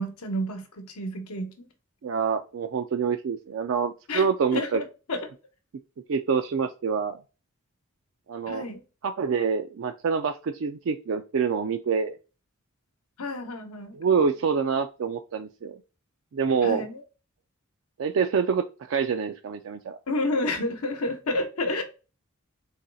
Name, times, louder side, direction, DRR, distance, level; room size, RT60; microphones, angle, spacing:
voice 1, 0.0-1.7 4.1-4.2 4.5-5.2 8.5-8.8 13.2-14.0 16.6-17.0 20.1-21.8, left 1 dB, 85° left, 0.9 m, -30 dB
voice 2, 2.0-4.8 6.1-7.2 8.3-8.6 9.0-12.2 13.9-15.8 16.3-16.9 18.0-20.0, right 6 dB, 60° right, 0.3 m, -26 dB
4.1 x 3.1 x 3.9 m
head